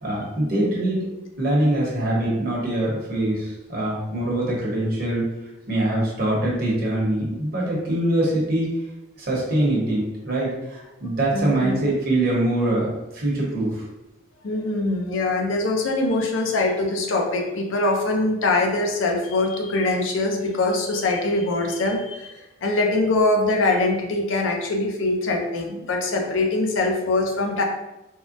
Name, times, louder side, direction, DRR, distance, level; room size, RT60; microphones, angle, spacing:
voice 1, 0.0-1.0 1.4-5.3 5.7-8.7 9.2-13.8, right 1 dB, 50° right, -4 dB, 0.9 m, -23 dB
voice 2, 11.3-11.8 14.4-27.6, left 2 dB, 80° left, 2 dB, 0.5 m, -23 dB
3.5 x 2.1 x 2.5 m, 0.96 s
head